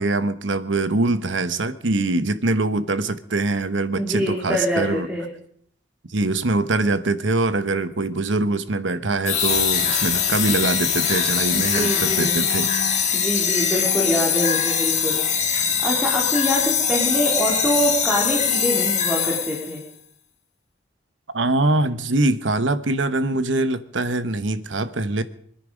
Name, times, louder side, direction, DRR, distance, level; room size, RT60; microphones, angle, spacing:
voice 1, 0.0-5.1 6.1-12.7 21.3-25.2, right 2 dB, 85° right, 12 dB, 1.0 m, -23 dB
voice 2, 4.0-5.3 11.5-12.3 13.1-19.8, equal, 5° right, -3 dB, 3.1 m, -25 dB
sound 1, 9.2-19.8, left 7 dB, 40° left, 1.7 m, -22 dB
24.5 x 10.5 x 5.1 m, 0.66 s
head